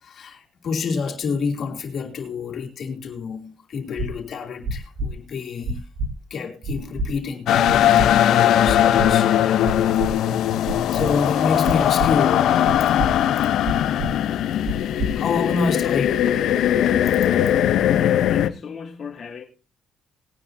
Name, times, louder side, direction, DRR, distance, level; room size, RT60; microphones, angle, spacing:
voice 1, 0.0-5.8 6.3-9.3 10.9-13.0 14.6-14.7 15.1-16.4, left 5 dB, 60° left, 2.9 m, -28 dB
sound 1, 4.0-4.1 4.6-5.1 5.6-6.1 6.6-7.1 7.6-8.1 8.6-9.1 9.6-10.1 10.6-11.1 11.6-12.1 12.6-13.1 13.6-14.1 14.6-15.1, right 2 dB, 75° right, 3.0 m, -27 dB
sound 2, 7.5-18.5, left 11 dB, 80° left, 0.8 m, -19 dB
voice 2, 17.9-19.4, left 6 dB, 45° left, 2.2 m, -36 dB
20.0 x 9.8 x 2.8 m
cardioid pair, 90°, 0 cm